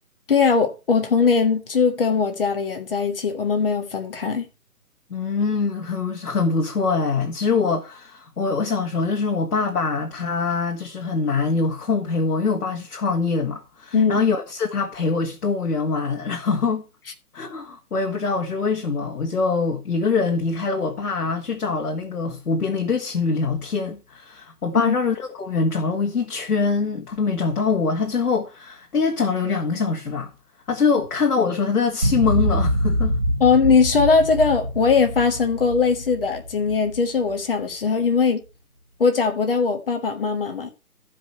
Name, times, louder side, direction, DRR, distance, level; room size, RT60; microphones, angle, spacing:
voice 1, 0.3-4.4 13.9-14.2 24.7-24.9 33.4-38.4 39.0-40.7, left 5 dB, 35° left, 1.5 m, -20 dB
voice 2, 5.1-16.8 17.3-30.3 30.7-33.2, left 4 dB, 70° left, 1.8 m, -24 dB
sound 1, 32.0-37.4, equal, 30° right, 0.6 m, -25 dB
14.0 x 5.2 x 4.3 m
hypercardioid pair, 165°, 46 cm